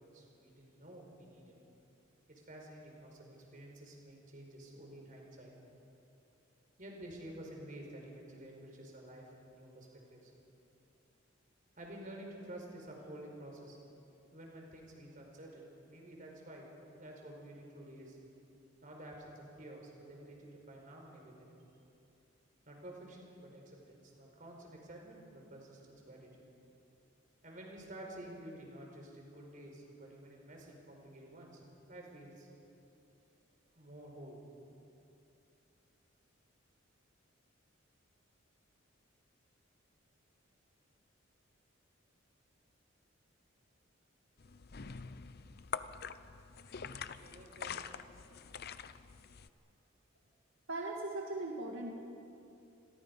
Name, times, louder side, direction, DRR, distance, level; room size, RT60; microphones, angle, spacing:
voice 1, 0.0-1.6 2.3-5.5 6.8-10.3 11.8-13.8 14.3-16.6 17.0-18.2 18.8-21.6 22.6-26.5 27.4-32.5 33.7-34.4 47.2-48.2, right 1 dB, 40° right, 0 dB, 5.1 m, -51 dB
sound 1, 44.4-49.5, left 6 dB, 50° left, 0.7 m, -45 dB
voice 2, 50.7-52.0, right 2 dB, 75° right, -1 dB, 2.0 m, -39 dB
28.5 x 22.0 x 5.5 m, 2.7 s
head